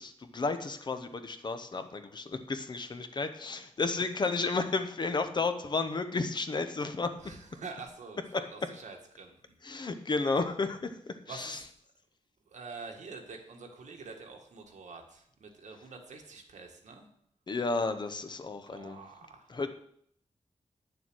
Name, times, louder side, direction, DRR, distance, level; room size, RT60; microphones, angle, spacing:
voice 1, 0.0-7.2 8.3-8.4 9.6-11.6 17.5-19.0 19.5-19.7, left 3 dB, 40° left, 8 dB, 0.8 m, -32 dB
voice 2, 7.1-8.2 8.5-9.4 9.7-9.9 11.3-11.6 12.4-17.1 18.7-19.5, right 4 dB, 80° right, 2 dB, 1.7 m, -46 dB
9.2 x 6.9 x 6.2 m, 0.67 s
wide cardioid pair, 155°, 12 cm